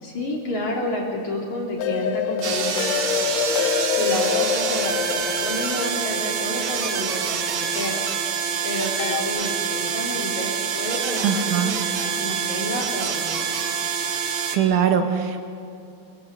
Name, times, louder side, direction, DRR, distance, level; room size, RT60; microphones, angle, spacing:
voice 1, 0.0-3.5 3.9-8.0 8.6-13.6, left 1 dB, 40° left, -1 dB, 4.0 m, -30 dB
sound 1, 1.8-7.9 9.0-9.2, left 8 dB, 85° left, 3.3 m, -26 dB
sound 2, 2.4-14.6, right 7 dB, 60° right, 1.9 m, -26 dB
voice 2, 11.2-11.8 14.5-15.4, right 8 dB, 80° right, 5 dB, 3.9 m, -21 dB
23.0 x 21.5 x 6.7 m, 2.6 s
omnidirectional pair, 5.5 m